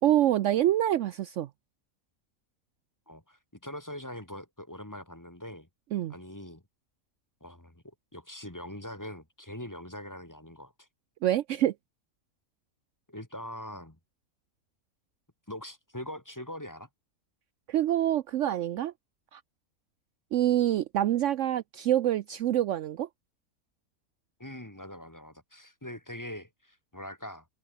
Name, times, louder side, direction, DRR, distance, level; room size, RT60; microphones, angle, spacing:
voice 1, 0.0-1.5 5.9-6.1 11.2-11.7 17.7-18.9 19.3-19.4 20.3-23.1, right 12 dB, 70° right, 0.9 m, -26 dB
voice 2, 3.1-5.7 6.1-6.6 7.4-10.9 13.1-14.0 15.5-16.9 24.4-27.5, left 1 dB, 15° left, 2.0 m, -42 dB
omnidirectional pair, 1.5 m